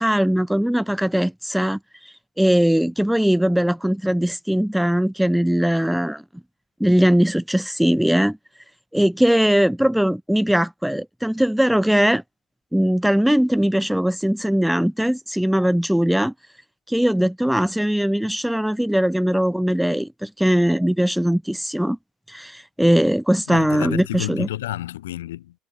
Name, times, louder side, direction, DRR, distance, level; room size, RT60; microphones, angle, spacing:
voice 1, 0.0-6.2 6.8-8.4 8.9-12.2 12.7-16.3 16.9-22.0 22.3-24.5, equal, ahead, 0.6 m, -20 dB
voice 2, 23.5-25.5, left 14 dB, 75° left, 5.4 m, -30 dB
figure-of-eight pair, 65°, 0 cm